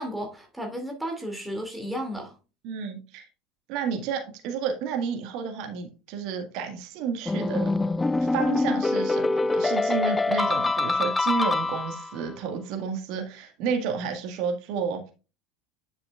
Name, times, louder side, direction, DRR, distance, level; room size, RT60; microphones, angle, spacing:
voice 1, 0.0-2.4, equal, 5° right, 2.5 m, -33 dB
voice 2, 2.6-3.3 3.7-7.7 8.2-15.0, right 6 dB, 55° right, 1.7 m, -31 dB
sound 1, 7.3-12.2, left 3 dB, 10° left, 0.4 m, -25 dB
10.5 x 6.2 x 2.4 m
figure-of-eight pair, 70°, 0 cm